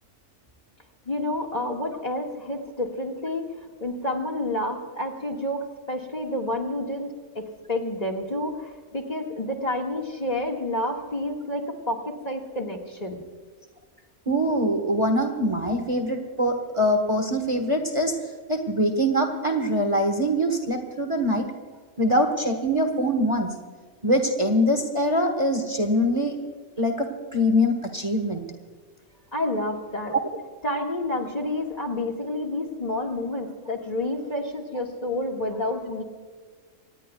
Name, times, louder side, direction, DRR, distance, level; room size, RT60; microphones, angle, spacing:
voice 1, 1.1-3.5 3.8-13.2 29.3-30.1 30.6-36.0, left 1 dB, 30° left, 1 dB, 1.8 m, -29 dB
voice 2, 14.3-18.1 18.5-21.5 22.0-23.5 24.0-26.4 26.8-28.4 30.1-30.2, equal, 25° right, 5 dB, 1.3 m, -23 dB
26.5 x 18.5 x 2.3 m, 1.5 s
omnidirectional pair, 1.3 m